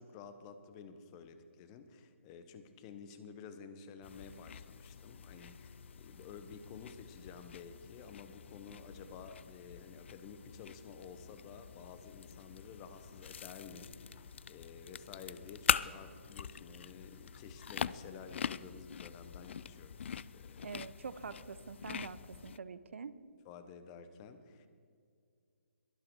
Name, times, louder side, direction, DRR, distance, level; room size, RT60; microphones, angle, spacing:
voice 1, 0.0-20.8 23.4-24.7, left 6 dB, 30° left, 10 dB, 1.0 m, -52 dB
sound 1, 4.0-22.6, left 7 dB, 60° left, 0.4 m, -42 dB
voice 2, 20.6-23.1, right 5 dB, 70° right, 14 dB, 0.8 m, -45 dB
22.5 x 7.7 x 4.6 m, 2.2 s
figure-of-eight pair, 140°, 7 cm